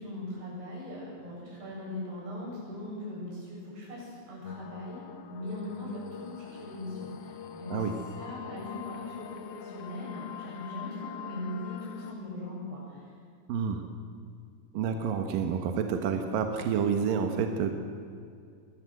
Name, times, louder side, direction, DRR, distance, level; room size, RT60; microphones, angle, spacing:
voice 1, 0.0-5.0 5.3-13.0, left 1 dB, 90° right, -4 dB, 10.0 m, -40 dB
sound 1, 4.4-12.1, left 9 dB, 75° left, 1.4 m, -43 dB
voice 2, 13.5-13.8 14.7-17.7, right 7 dB, 70° right, 5 dB, 2.8 m, -29 dB
23.0 x 19.0 x 7.9 m, 2.3 s
omnidirectional pair, 4.5 m